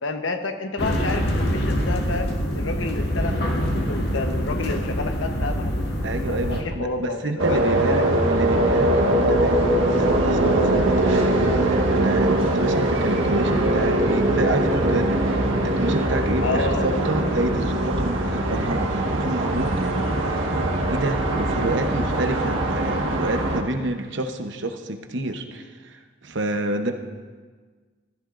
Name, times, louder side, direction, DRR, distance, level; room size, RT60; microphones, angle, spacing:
voice 1, 0.0-5.8 6.3-8.1 16.4-16.9, left 3 dB, 75° left, 5 dB, 1.0 m, -30 dB
sound 1, 0.8-6.6, equal, 55° left, 1.7 m, -25 dB
voice 2, 6.0-11.2 11.6-20.5 20.9-26.9, right 1 dB, 65° right, 6 dB, 0.9 m, -28 dB
sound 2, 7.4-23.6, right 1 dB, 85° right, 1.5 m, -22 dB
15.0 x 14.0 x 2.5 m, 1.5 s
head